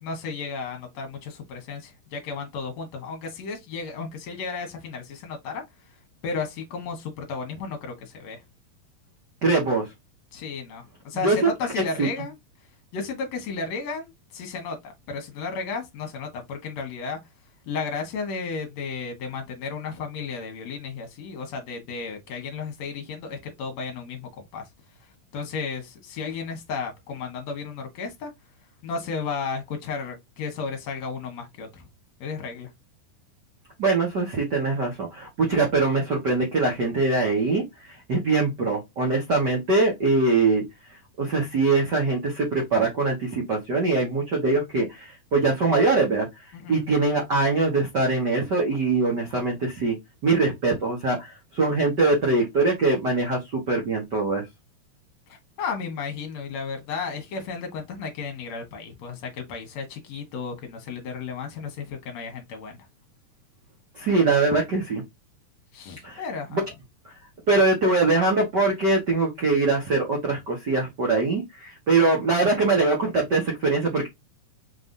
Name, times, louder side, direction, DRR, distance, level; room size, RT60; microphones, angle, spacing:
voice 1, 0.0-5.6 6.2-8.4 10.3-12.3 12.9-17.2 17.7-24.6 25.3-28.3 28.8-31.9 32.2-32.7 46.5-46.8 55.3-62.8 65.7-66.6, left 5 dB, 60° left, 2.2 m, -33 dB
voice 2, 9.4-9.9 11.1-12.1 33.8-40.6 41.2-50.0 50.2-54.4 63.9-65.0 66.0-66.2 66.5-66.6 67.5-74.1, right 3 dB, 75° right, 0.9 m, -23 dB
5.7 x 3.4 x 2.7 m
omnidirectional pair, 4.2 m